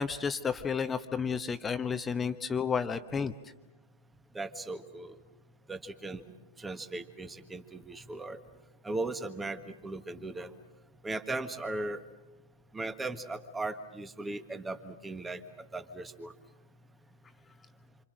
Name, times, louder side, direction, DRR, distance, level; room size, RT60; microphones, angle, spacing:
voice 1, 0.0-3.3, left 6 dB, 15° left, 10 dB, 1.1 m, -31 dB
voice 2, 4.3-5.1 5.7-6.2 6.6-8.4 8.8-10.5 11.0-12.0 12.7-16.3, right 2 dB, 10° right, 9 dB, 1.6 m, -38 dB
27.5 x 26.5 x 6.4 m, 1.1 s
figure-of-eight pair, 100°, 0 cm